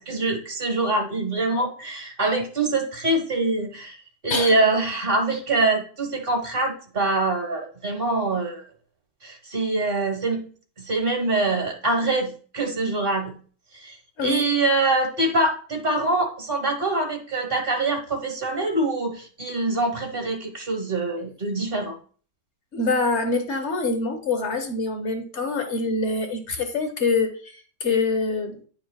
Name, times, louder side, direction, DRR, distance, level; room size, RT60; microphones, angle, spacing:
voice 1, 0.1-4.0 4.2-8.6 9.2-10.4 10.8-13.3 13.8-14.0 14.2-21.9, right 2 dB, 30° right, 2 dB, 1.2 m, -24 dB
voice 2, 14.2-14.5 22.7-28.6, left 3 dB, 70° left, 6 dB, 0.6 m, -25 dB
10.5 x 5.0 x 2.3 m, 0.41 s
omnidirectional pair, 2.4 m